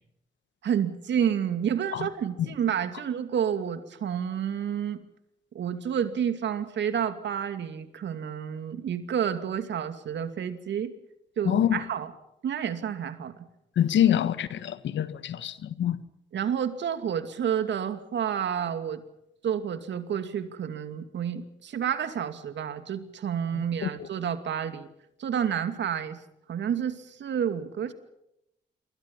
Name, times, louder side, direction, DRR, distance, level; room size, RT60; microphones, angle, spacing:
voice 1, 0.6-5.0 5.5-10.9 11.4-12.1 12.4-13.3 16.3-19.0 19.4-24.9 25.2-26.2 26.5-27.9, right 8 dB, 70° right, 2.6 m, -29 dB
voice 2, 11.5-11.8 13.8-16.0 23.6-24.1, left 10 dB, 70° left, 1.6 m, -26 dB
27.0 x 23.5 x 5.6 m
supercardioid pair, 45°, 19 cm